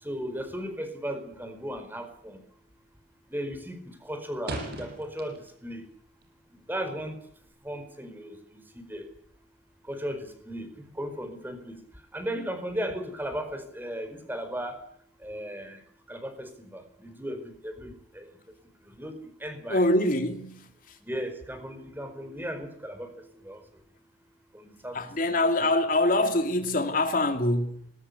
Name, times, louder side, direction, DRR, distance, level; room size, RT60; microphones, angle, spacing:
voice 1, 0.0-2.4 3.3-5.8 6.7-7.2 7.6-9.1 9.9-11.8 12.1-14.8 15.2-15.8 16.1-18.3 18.9-19.8 21.0-23.6 24.5-25.0 25.3-25.4, equal, 10° right, 4.7 m, -36 dB
sound 1, 1.2-1.6 1.9-2.3 2.6-3.1 3.4-5.7 6.0-7.5, right 1 dB, 60° right, 7.5 m, -39 dB
voice 2, 19.7-21.0 24.9-27.9, left 1 dB, 50° left, 2.6 m, -25 dB
21.5 x 19.5 x 8.2 m
head